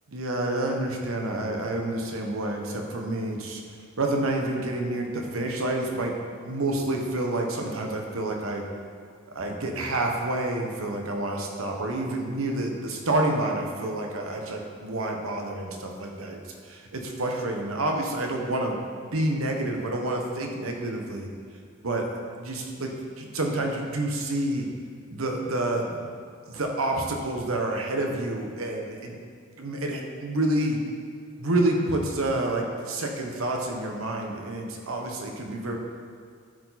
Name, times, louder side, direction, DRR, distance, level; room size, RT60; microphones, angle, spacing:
voice 1, 0.1-3.6 4.0-6.1 6.4-8.6 9.3-16.4 16.6-18.8 19.1-21.3 21.8-22.1 22.4-22.9 23.2-24.7 25.1-26.0 26.5-29.1 29.6-30.8 31.4-35.8, right 1 dB, 90° right, 1 dB, 1.1 m, -28 dB
12.0 x 4.9 x 4.1 m, 2.2 s
head